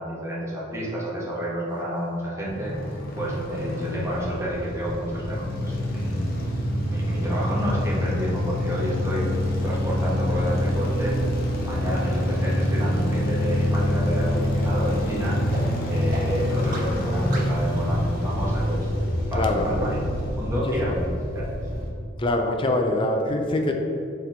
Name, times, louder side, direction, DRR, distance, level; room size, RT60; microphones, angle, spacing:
voice 1, 0.0-2.7 3.1-6.2 6.9-9.3 9.6-11.3 11.6-18.9 19.3-20.0 20.3-21.0 21.3-21.6, equal, 15° right, -6 dB, 1.3 m, -30 dB
sound 1, 2.4-21.9, left 1 dB, 50° left, 1.0 m, -26 dB
sound 2, 11.9-12.0 12.5-12.6 13.1-13.2 13.7-13.8 14.3-14.4 14.9-15.0 15.5-15.6 16.1-16.2 16.7-16.8 17.3-17.4, right 2 dB, 45° right, 1.1 m, -37 dB
voice 2, 19.4-19.7 20.5-20.9 22.2-23.7, left 1 dB, 25° left, 3 dB, 0.5 m, -24 dB
5.9 x 4.3 x 4.0 m, 2.5 s
head